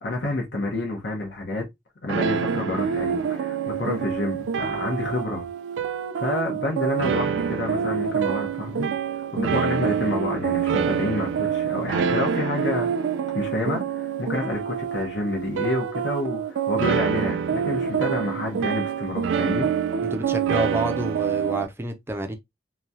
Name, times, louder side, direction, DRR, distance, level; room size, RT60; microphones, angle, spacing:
voice 1, 0.0-1.7 2.0-5.5 6.2-8.9 9.3-12.9 13.3-19.7, left 2 dB, 70° left, 0.9 m, -29 dB
sound 1, 2.1-21.7, right 7 dB, 90° right, 0.3 m, -26 dB
voice 2, 20.0-22.3, right 1 dB, 15° right, 0.4 m, -28 dB
3.0 x 2.3 x 2.6 m
head